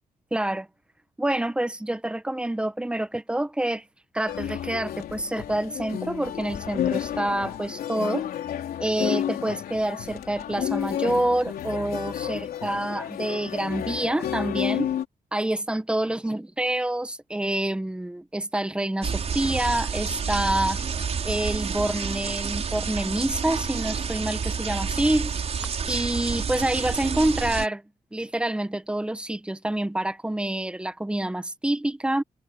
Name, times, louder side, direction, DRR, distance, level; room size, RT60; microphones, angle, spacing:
voice 1, 0.3-0.7 1.2-3.8 4.1-8.3 8.8-14.9 15.3-20.8 21.2-25.3 25.9-27.8 28.1-32.2, right 1 dB, 5° right, 1.3 m, -27 dB
sound 1, 4.3-15.0, left 10 dB, 85° left, 3.8 m, -31 dB
sound 2, 19.0-27.7, right 6 dB, 45° right, 5.4 m, -29 dB
cardioid pair, 120°, 15 cm